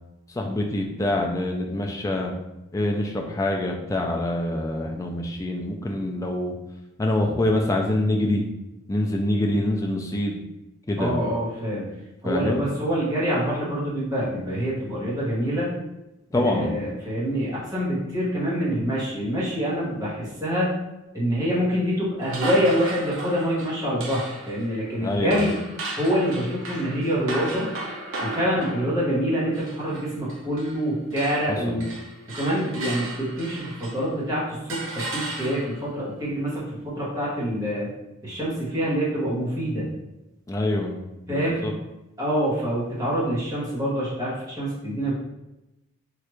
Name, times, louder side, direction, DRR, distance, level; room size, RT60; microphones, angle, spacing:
voice 1, 0.4-2.3 2.7-6.5 7.0-8.4 8.9-10.4 10.9-11.1 12.2-12.7 16.3-16.7 25.0-25.4 31.7-31.8 40.5-40.9 41.3-41.7, left 1 dB, 15° left, 1 dB, 0.3 m, -25 dB
voice 2, 11.0-12.0 12.2-15.7 16.3-20.7 21.1-25.6 26.0-27.7 28.2-31.9 32.3-37.9 38.2-39.9 41.3-41.6 42.2-45.1, equal, 15° right, -8 dB, 1.0 m, -26 dB
sound 1, 22.2-30.8 31.1-34.2 34.7-35.9, right 2 dB, 60° right, 0.7 m, -35 dB
3.2 x 2.4 x 3.0 m, 0.97 s
head